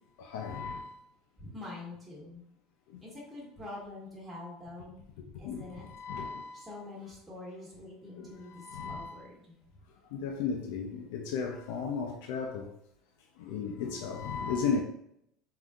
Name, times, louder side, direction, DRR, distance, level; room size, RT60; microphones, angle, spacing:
voice 1, 0.3-0.8 5.4-5.6 5.9-6.5 8.6-9.1 10.1-12.7 13.4-14.8, left 5 dB, 80° left, 0.4 m, -34 dB
voice 2, 1.4-2.4 3.0-5.0 5.4-5.9 6.5-9.6, left 2 dB, 15° right, 1.1 m, -45 dB
3.6 x 2.6 x 2.3 m
supercardioid pair, 125°, 0 cm